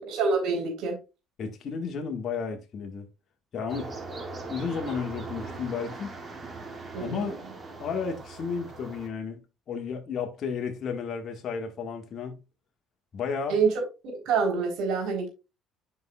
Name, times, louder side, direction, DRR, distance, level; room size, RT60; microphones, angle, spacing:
voice 1, 0.1-1.0 6.9-7.4 13.5-13.8 14.3-15.3, right 5 dB, 70° right, 3.7 m, -26 dB
voice 2, 1.4-3.1 3.5-3.9 4.5-6.1 7.0-7.3 7.8-9.4 9.7-12.4 13.1-13.6, left 6 dB, 50° left, 1.6 m, -33 dB
sound 1, 3.7-9.1, right 3 dB, 35° right, 2.4 m, -40 dB
9.4 x 5.6 x 2.4 m
supercardioid pair, 75°, 0 cm